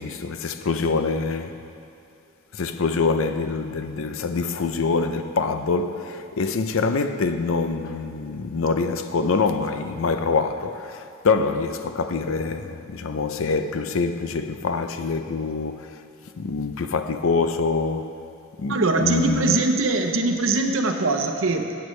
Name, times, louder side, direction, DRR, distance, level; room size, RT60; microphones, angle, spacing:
voice 1, 0.0-1.6 2.5-16.0 16.4-18.1 18.6-19.6, left 4 dB, 85° left, 0.5 m, -25 dB
voice 2, 18.7-21.8, right 3 dB, 85° right, 0.8 m, -22 dB
14.0 x 8.6 x 3.2 m
head